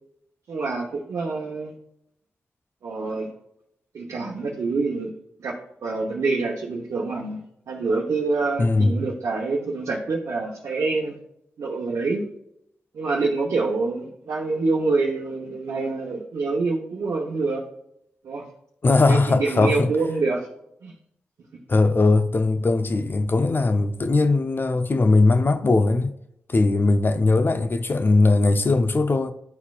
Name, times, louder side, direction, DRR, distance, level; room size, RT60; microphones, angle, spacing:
voice 1, 0.5-1.7 2.8-3.3 3.9-5.1 5.4-5.5 5.8-7.4 7.7-11.2 11.6-12.3 12.9-17.6 18.2-18.5 19.1-20.5 20.8-20.9, right 3 dB, 75° right, 1.0 m, -26 dB
voice 2, 8.6-9.0 18.8-19.9 21.7-26.1 26.5-29.3, left 3 dB, 45° left, 0.7 m, -19 dB
11.5 x 4.2 x 2.4 m
supercardioid pair, 45°, 5 cm